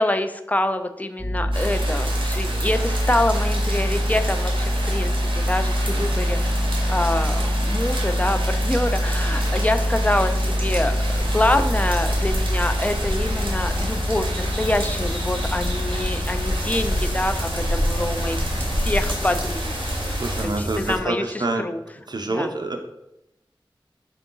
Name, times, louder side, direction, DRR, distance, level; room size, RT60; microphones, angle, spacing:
voice 1, 0.0-6.6 6.9-18.4 18.7-19.7 20.4-20.5 20.8-21.2 21.6-21.8 22.3-22.5, left 1 dB, 20° left, 8 dB, 0.4 m, -25 dB
sound 1, 1.2-20.8, equal, ahead, 0.8 m, -25 dB
sound 2, 1.5-20.4, right 1 dB, 80° right, 0.9 m, -32 dB
sound 3, 11.1-21.0, equal, 75° left, 0.8 m, -29 dB
voice 2, 20.1-21.7 22.1-22.8, right 2 dB, 55° right, 5 dB, 0.5 m, -27 dB
3.7 x 2.5 x 3.7 m, 0.87 s
wide cardioid pair, 40°, 9 cm